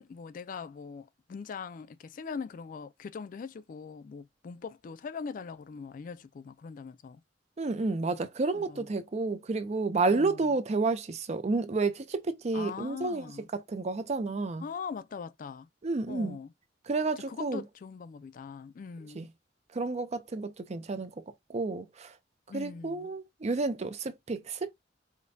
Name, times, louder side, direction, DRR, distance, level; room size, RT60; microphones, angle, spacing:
voice 1, 0.0-7.2 8.5-8.9 10.1-10.6 12.5-13.5 14.6-15.7 16.1-16.5 17.3-19.3 22.5-23.1, left 5 dB, 45° left, 0.3 m, -41 dB
voice 2, 7.6-13.3 13.5-14.6 15.8-16.4 16.9-17.6 19.2-19.3 19.7-21.1 21.5-22.1 22.5-24.7, right 3 dB, 35° right, 0.5 m, -30 dB
5.0 x 2.2 x 2.6 m
head